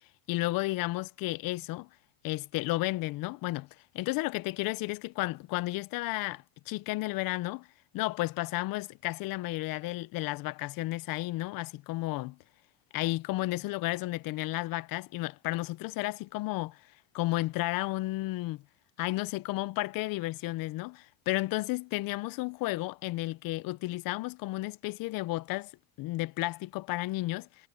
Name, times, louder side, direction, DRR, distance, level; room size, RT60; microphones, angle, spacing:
voice 1, 0.3-1.9 2.2-3.7 3.9-7.7 7.9-12.4 12.9-16.8 17.1-18.6 19.0-25.7 26.0-27.5, left 19 dB, 50° left, 0.8 m, -32 dB
supercardioid pair, 120°, 45 cm